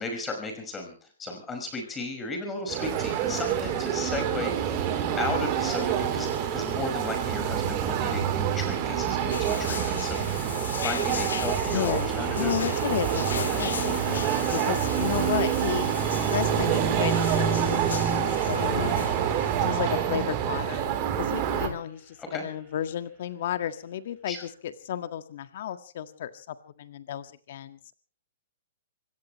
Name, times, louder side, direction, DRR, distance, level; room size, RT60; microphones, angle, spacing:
voice 1, 0.0-4.9 5.2-10.5 10.8-12.5 14.5-14.8 22.2-22.4 24.3-24.4, left 2 dB, 15° left, 4 dB, 5.5 m, -35 dB
sound 1, 2.7-21.7, right 9 dB, 35° right, 3.7 m, -27 dB
sound 2, 9.3-20.2, left 7 dB, 90° left, 1.9 m, -38 dB
voice 2, 11.7-12.1 12.3-15.9 16.3-20.8 21.2-27.9, left 10 dB, 55° left, 10 dB, 1.7 m, -33 dB
sound 3, 12.0-23.0, right 2 dB, 10° right, 7.7 m, -45 dB
26.0 x 17.0 x 3.2 m, 0.37 s
hypercardioid pair, 155°, 0 cm